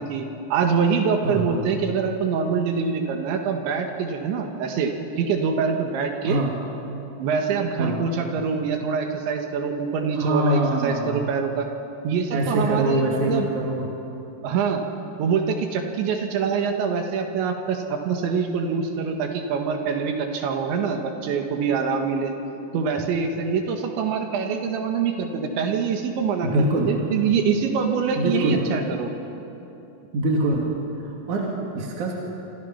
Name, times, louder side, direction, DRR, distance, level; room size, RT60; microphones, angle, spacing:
voice 1, 0.0-6.4 7.2-11.7 12.0-13.5 14.4-14.8 15.2-22.3 22.7-29.1, right 6 dB, 65° right, 4 dB, 3.8 m, -25 dB
voice 2, 1.2-1.6 6.3-6.5 7.8-8.0 10.2-11.3 12.3-13.9 26.4-26.9 28.2-28.6 30.1-30.7 31.0-32.1, right 1 dB, 45° right, -2 dB, 3.0 m, -24 dB
27.0 x 26.5 x 5.9 m, 2.9 s
omnidirectional pair, 5.9 m